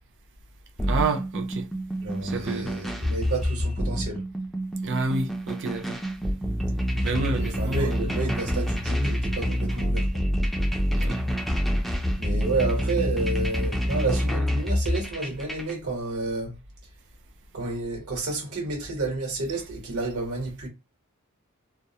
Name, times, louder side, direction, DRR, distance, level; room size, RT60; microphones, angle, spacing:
sound 1, 0.8-15.7, equal, ahead, 0.3 m, -27 dB
voice 1, 0.8-1.7 2.2-2.7 4.8-6.0 7.0-8.1 11.0-11.2, right 3 dB, 55° right, 0.5 m, -29 dB
voice 2, 2.0-4.2 6.8-10.2 12.2-16.6 17.5-20.7, right 3 dB, 75° right, 1.1 m, -30 dB
2.2 x 2.0 x 2.7 m
head